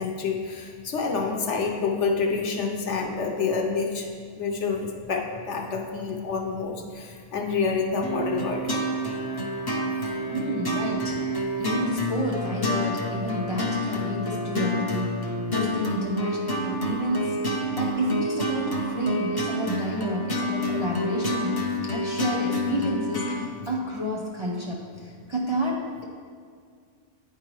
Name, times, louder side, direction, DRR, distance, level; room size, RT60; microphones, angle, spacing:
voice 1, 0.0-4.1 4.4-8.6, left 4 dB, 70° left, 2 dB, 1.0 m, -28 dB
sound 1, 8.0-23.5, equal, 30° left, 0.4 m, -28 dB
voice 2, 10.3-26.0, equal, 30° right, -3 dB, 0.6 m, -30 dB
10.0 x 4.7 x 3.1 m, 2.1 s
omnidirectional pair, 1.3 m